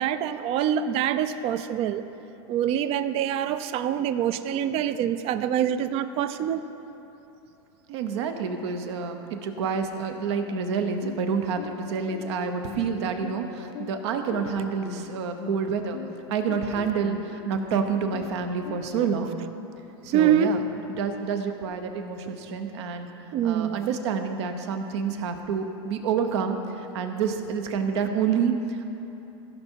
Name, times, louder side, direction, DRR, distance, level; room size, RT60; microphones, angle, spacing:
voice 1, 0.0-2.0 2.5-6.6 20.1-20.5 23.3-23.8, right 9 dB, 40° right, 12 dB, 0.5 m, -25 dB
voice 2, 7.9-16.0 16.3-19.4 20.0-20.6 20.9-23.1 23.4-28.8, right 6 dB, 70° right, 6 dB, 1.0 m, -28 dB
sound 1, 10.5-19.2, left 11 dB, 60° left, 0.5 m, -41 dB
16.5 x 5.5 x 4.6 m, 2.9 s
supercardioid pair, 125°, 15 cm